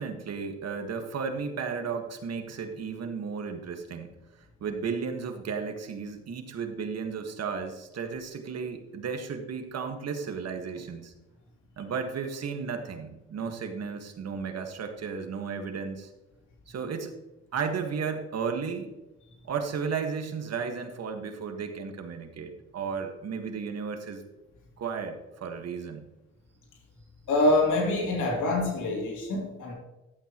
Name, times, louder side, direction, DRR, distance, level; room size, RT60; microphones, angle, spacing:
voice 1, 0.0-4.1 4.6-11.1 11.8-16.1 16.7-17.2 17.5-18.9 19.4-24.2 24.8-26.0, right 5 dB, 55° right, 5 dB, 1.6 m, -34 dB
voice 2, 27.3-29.7, left 2 dB, 80° left, -1 dB, 2.9 m, -25 dB
12.5 x 8.0 x 3.0 m, 1.0 s
cardioid pair, 90°, 30 cm